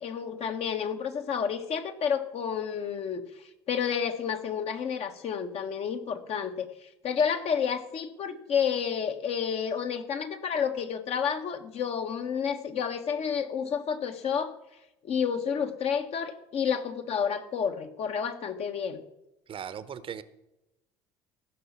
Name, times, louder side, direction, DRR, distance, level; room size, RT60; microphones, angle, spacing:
voice 1, 0.0-14.6 15.0-19.0, left 7 dB, 50° left, 6 dB, 1.4 m, -30 dB
voice 2, 19.5-20.2, right 8 dB, 40° right, 14 dB, 0.9 m, -38 dB
15.5 x 5.9 x 7.3 m, 0.92 s
figure-of-eight pair, 60°, 14 cm